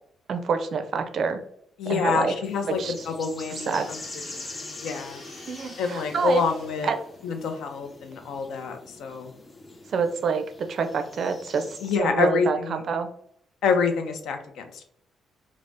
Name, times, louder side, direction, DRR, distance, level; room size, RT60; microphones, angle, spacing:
voice 1, 0.3-1.4 1.9-2.3 2.7-2.9 3.7-3.9 5.5-6.4 6.8-7.0 9.9-13.1, right 5 dB, 55° right, 7 dB, 0.4 m, -26 dB
voice 2, 1.8-2.8 3.1-4.0 4.3-5.2 5.8-6.9 7.2-9.3 11.8-12.8 13.6-14.8, left 5 dB, 80° left, 6 dB, 0.4 m, -27 dB
sound 1, 2.4-12.0, left 2 dB, 25° left, 0.5 m, -44 dB
sound 2, 3.4-7.5, left 2 dB, 65° left, 1.0 m, -48 dB
2.6 x 2.0 x 3.3 m, 0.70 s
cardioid pair, 90°, 0 cm